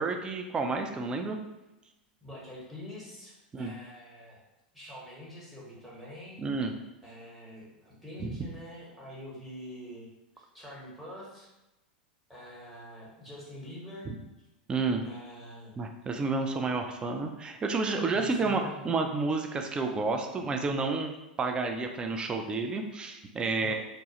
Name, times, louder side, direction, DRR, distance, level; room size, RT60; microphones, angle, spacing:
voice 1, 0.0-1.4 3.5-3.7 6.4-6.7 8.2-8.3 14.1-14.2 14.7-15.0 15.8-21.1 21.4-23.7, right 3 dB, 20° right, 4 dB, 0.3 m, -30 dB
voice 2, 2.2-4.4 4.7-6.4 7.0-10.1 10.4-11.5 12.3-14.1 15.0-15.8 18.1-18.8 23.6-23.7, left 1 dB, ahead, -6 dB, 1.0 m, -45 dB
2.2 x 2.0 x 2.8 m, 0.98 s
hypercardioid pair, 95°, 5 cm